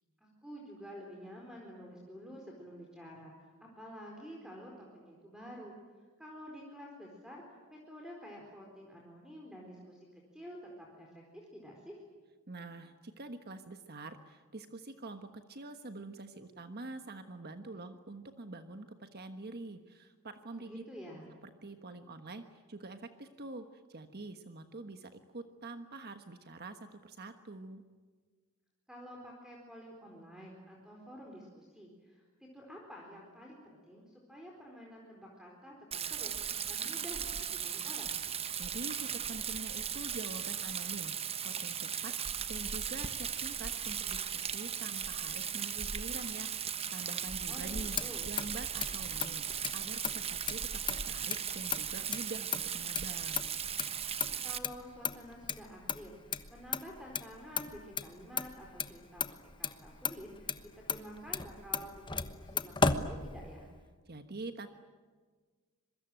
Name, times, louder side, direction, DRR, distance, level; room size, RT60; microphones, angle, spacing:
voice 1, 0.2-5.7 6.2-7.4 7.7-10.1 10.3-10.6 10.9-12.0 20.7-21.3 28.9-32.2 32.5-38.2 47.5-48.3 54.4-63.7, equal, 5° right, -1 dB, 4.3 m, -49 dB
voice 2, 12.5-20.8 21.4-27.8 38.6-41.2 41.4-48.0 48.2-53.4 64.1-64.7, right 2 dB, 45° right, 8 dB, 1.3 m, -46 dB
Rain, 35.9-54.6, right 8 dB, 25° right, 1.1 m, -37 dB
Motor vehicle (road), 47.6-63.8, left 5 dB, 20° left, 1.1 m, -37 dB
26.5 x 23.5 x 9.1 m, 1.5 s
head